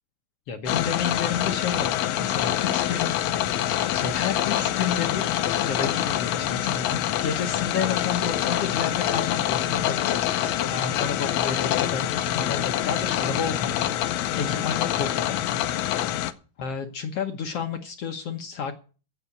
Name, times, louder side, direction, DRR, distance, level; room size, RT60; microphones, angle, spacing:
voice 1, 0.5-3.1 3.9-15.4 16.6-18.7, left 6 dB, 65° left, 6 dB, 1.5 m, -31 dB
sound 1, 0.7-16.3, left 12 dB, 85° left, 1.5 m, -26 dB
16.0 x 5.9 x 8.1 m, 0.37 s
omnidirectional pair, 4.1 m